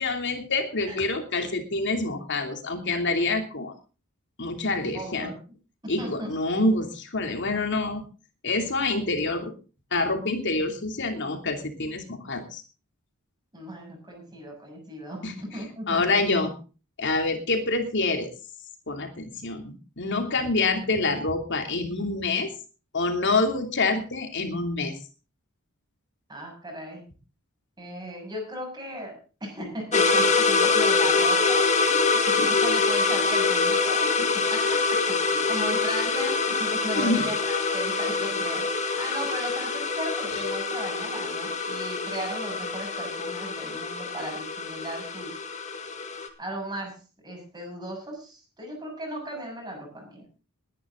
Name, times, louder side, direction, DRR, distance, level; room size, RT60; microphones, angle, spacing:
voice 1, 0.0-3.7 4.4-5.3 5.9-8.0 8.4-9.5 9.9-12.6 15.2-15.3 15.9-16.5 17.0-18.3 18.9-22.5 22.9-24.9 37.0-37.2, left 3 dB, 55° left, 5 dB, 2.9 m, -26 dB
voice 2, 4.9-5.4 5.8-6.4 13.5-16.2 20.3-20.5 26.3-27.0 27.8-45.4 46.4-50.3, right 1 dB, 20° right, 1 dB, 6.9 m, -37 dB
sound 1, 29.9-46.3, left 4 dB, 35° left, 2.1 m, -25 dB
20.5 x 10.5 x 3.8 m, 0.34 s
head